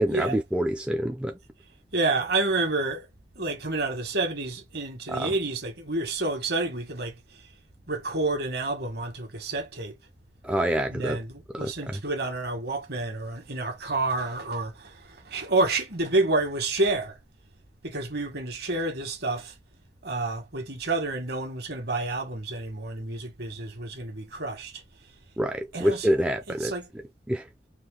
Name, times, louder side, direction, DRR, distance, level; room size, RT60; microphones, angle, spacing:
voice 1, 0.0-1.4 5.1-5.3 10.4-11.2 11.5-12.0 25.4-26.7 27.3-27.5, equal, 5° right, 0.4 m, -26 dB
voice 2, 1.9-3.1 3.3-7.1 7.9-10.0 10.9-17.2 17.8-19.5 20.0-24.8 25.7-26.1 26.5-26.9, right 2 dB, 60° right, 1.5 m, -29 dB
4.6 x 2.7 x 3.7 m
head